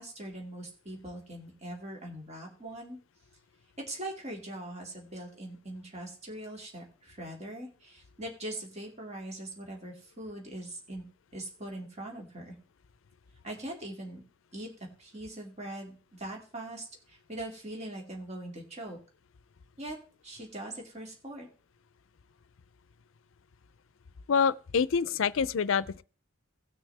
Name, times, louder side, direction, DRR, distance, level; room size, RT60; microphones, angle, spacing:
voice 1, 0.0-3.0 3.9-11.1 11.3-12.6 13.4-14.2 14.5-14.7 15.0-19.0 19.8-20.0 20.2-21.5, right 1 dB, 35° right, 2.3 m, -41 dB
voice 2, 24.3-26.0, left 6 dB, 75° left, 0.5 m, -26 dB
18.0 x 6.3 x 3.3 m
head